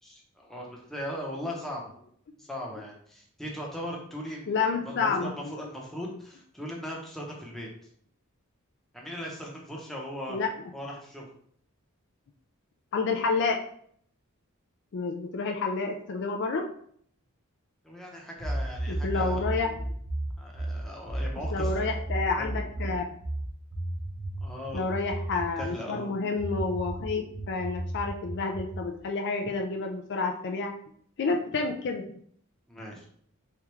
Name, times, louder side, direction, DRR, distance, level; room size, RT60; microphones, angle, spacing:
voice 1, 0.0-1.9 2.4-4.5 4.8-7.7 8.9-10.4 10.7-11.3 17.8-19.5 20.4-21.7 22.4-22.5 24.4-24.9 25.1-25.3 25.6-26.1 32.7-33.0, equal, ahead, -2 dB, 0.7 m, -38 dB
voice 2, 4.5-5.3 10.3-10.5 12.9-13.6 14.9-16.7 18.9-19.7 21.5-23.0 24.7-30.7 31.2-32.1, left 4 dB, 50° left, 3 dB, 0.4 m, -29 dB
sound 1, 18.4-25.7 26.4-28.9, right 1 dB, 35° right, 0.7 m, -33 dB
3.5 x 3.3 x 3.1 m, 0.62 s
head